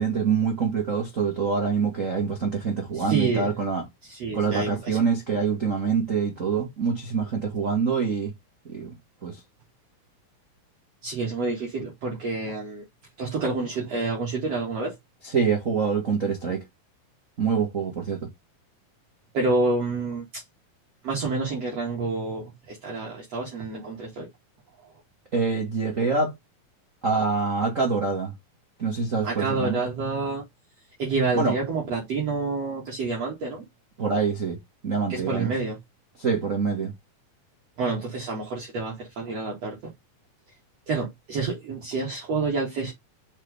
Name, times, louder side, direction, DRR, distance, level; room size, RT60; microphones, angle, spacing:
voice 1, 0.0-3.9 4.3-8.3 8.7-8.9 9.2-9.4 15.2-16.6 17.4-18.3 25.3-26.3 27.0-28.3 28.8-29.8 31.3-31.6 34.0-34.6 34.8-35.5 36.2-36.9, right 5 dB, 85° right, 0.7 m, -25 dB
voice 2, 2.9-3.5 4.1-5.0 11.0-12.8 13.2-15.0 19.3-20.4 21.0-24.3 29.2-30.4 31.0-33.7 35.1-35.8 37.8-39.8 40.9-42.9, right 3 dB, 50° right, 2.6 m, -28 dB
6.1 x 4.5 x 3.5 m
omnidirectional pair, 4.2 m